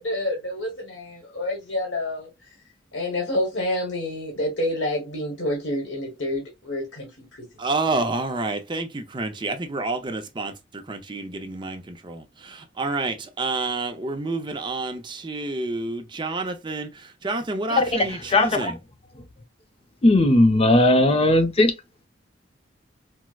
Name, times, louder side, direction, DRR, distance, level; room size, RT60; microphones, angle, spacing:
voice 1, 0.0-2.3 2.9-7.2 7.5-7.6, left 1 dB, 80° left, 1.2 m, -28 dB
voice 2, 7.6-18.8, right 3 dB, 25° right, 0.5 m, -29 dB
voice 3, 17.7-18.8 20.0-21.7, left 1 dB, 30° left, 0.5 m, -18 dB
4.5 x 2.0 x 2.3 m
head